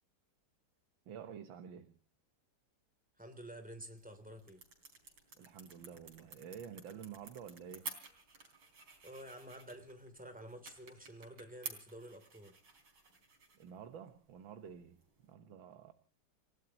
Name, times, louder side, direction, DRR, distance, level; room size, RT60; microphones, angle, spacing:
voice 1, 1.1-1.9 5.4-8.0 13.5-15.9, right 8 dB, 70° right, 2.0 m, -50 dB
voice 2, 3.2-4.6 9.0-12.6, right 1 dB, 5° right, 2.9 m, -50 dB
sound 1, 3.8-15.3, right 4 dB, 90° right, 4.4 m, -53 dB
29.5 x 16.5 x 2.9 m
omnidirectional pair, 2.2 m